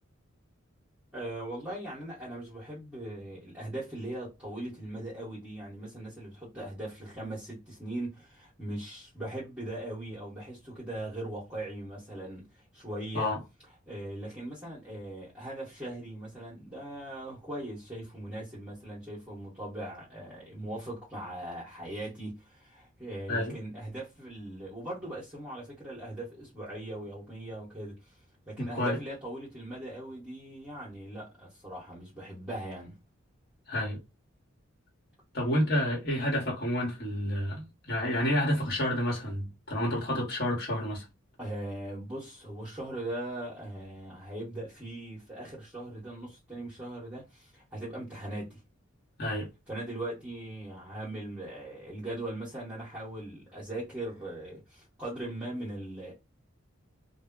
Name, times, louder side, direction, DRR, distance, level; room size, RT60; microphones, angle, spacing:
voice 1, 1.1-13.3 13.9-28.2 28.5-33.0 41.4-48.6 49.7-56.1, right 1 dB, 5° right, 1.0 m, -40 dB
voice 2, 28.6-29.0 33.7-34.0 35.3-41.0 49.2-49.5, left 1 dB, 50° left, 1.2 m, -29 dB
2.2 x 2.1 x 3.6 m
head